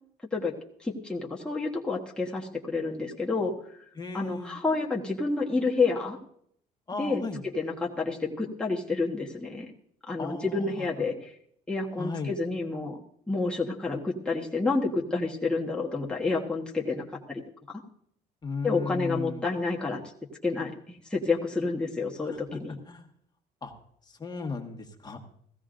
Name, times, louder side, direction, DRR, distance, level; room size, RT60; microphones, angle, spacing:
voice 1, 0.3-3.5 4.1-6.2 6.9-9.7 10.1-11.3 11.7-13.0 13.3-17.4 18.6-20.0 20.4-22.8, left 3 dB, 5° left, -3 dB, 1.3 m, -29 dB
voice 2, 4.0-4.5 6.9-7.4 10.2-10.7 12.0-12.3 18.4-19.4 22.3-22.4 22.9-23.0 23.6-23.7 24.1-25.2, left 4 dB, 25° left, 4 dB, 1.5 m, -35 dB
16.5 x 15.5 x 2.6 m, 0.68 s
cardioid pair, 110°, 17 cm